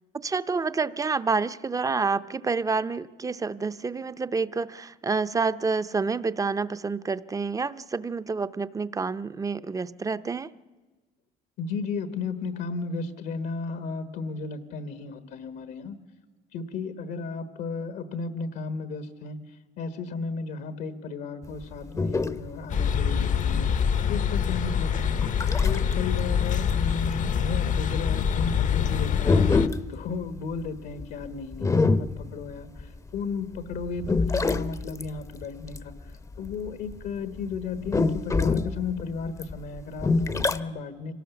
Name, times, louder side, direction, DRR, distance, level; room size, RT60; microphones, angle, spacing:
voice 1, 0.2-10.5, right 4 dB, 20° right, 14 dB, 0.6 m, -28 dB
voice 2, 11.6-16.0 16.5-19.4 19.8-23.7 24.1-25.2 25.6-35.9 36.4-41.1, left 4 dB, 75° left, 10 dB, 1.4 m, -34 dB
sound 1, 21.4-25.9 26.3-33.2 33.6-37.1 37.4-40.6, left 3 dB, 20° left, 0.7 m, -26 dB
sound 2, 22.7-29.7, left 7 dB, 50° left, 0.8 m, -25 dB
25.0 x 18.0 x 7.0 m, 1.3 s
cardioid pair, 110°, 17 cm